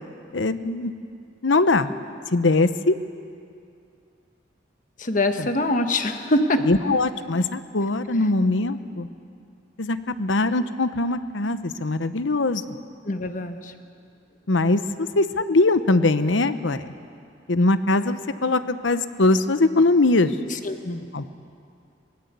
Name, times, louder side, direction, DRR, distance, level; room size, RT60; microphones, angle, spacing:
voice 1, 0.3-0.9 1.4-1.9 2.3-3.0 5.4-5.5 6.7-9.1 9.8-12.6 14.5-16.8 17.5-20.4 21.1-21.3, left 2 dB, 80° left, 11 dB, 1.0 m, -21 dB
voice 2, 5.0-6.7 13.1-13.7 20.5-21.0, left 1 dB, 45° left, 7 dB, 1.3 m, -24 dB
23.0 x 19.5 x 8.2 m, 2.4 s
head